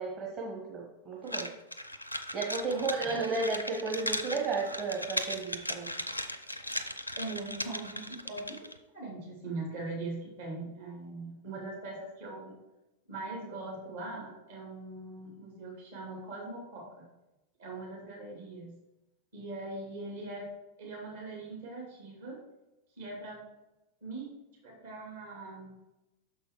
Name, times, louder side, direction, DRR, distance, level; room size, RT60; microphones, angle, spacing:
voice 1, 0.0-1.5 2.3-5.9 11.4-11.6, right 3 dB, 35° right, -2 dB, 1.2 m, -33 dB
sound 1, 1.3-8.8, left 1 dB, 90° left, 0.5 m, -37 dB
voice 2, 7.2-8.6 8.9-12.5 13.1-17.1 17.6-18.7 19.3-20.5 20.8-22.4 23.0-23.4 24.0-24.3 24.6-25.8, right 2 dB, 60° right, -3 dB, 2.4 m, -41 dB
6.6 x 5.4 x 4.6 m, 0.98 s
figure-of-eight pair, 90°, 0 cm